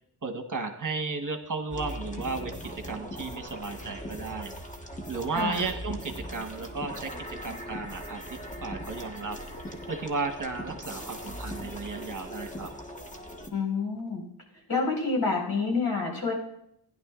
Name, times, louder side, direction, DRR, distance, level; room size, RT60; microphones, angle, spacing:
voice 1, 0.2-2.6 2.9-4.5 5.1-7.1 7.4-9.4 9.9-12.7, right 4 dB, 45° right, 5 dB, 1.3 m, -34 dB
sound 1, 1.7-13.5, equal, 15° left, 1.4 m, -40 dB
voice 2, 5.3-5.6 13.5-14.2 14.7-16.3, left 4 dB, 55° left, 0 dB, 4.7 m, -28 dB
15.5 x 11.0 x 2.5 m, 0.74 s
cardioid pair, 60°, 44 cm